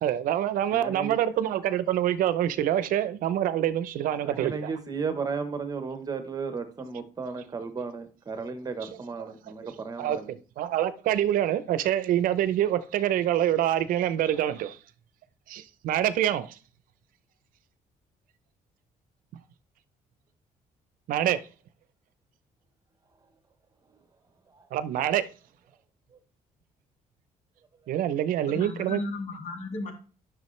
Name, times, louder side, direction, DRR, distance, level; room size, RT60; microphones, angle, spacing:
voice 1, 0.0-4.7 8.8-8.9 9.2-9.3 9.6-14.8 15.5-16.6 21.1-21.4 24.7-25.2 27.9-29.0, right 11 dB, 75° right, 0.6 m, -26 dB
voice 2, 0.7-1.2 4.2-10.3 24.5-24.6, right 5 dB, 25° right, 1.0 m, -34 dB
voice 3, 28.4-29.9, left 3 dB, 55° left, 2.2 m, -35 dB
10.5 x 6.2 x 3.2 m
cardioid pair, 145°, 14 cm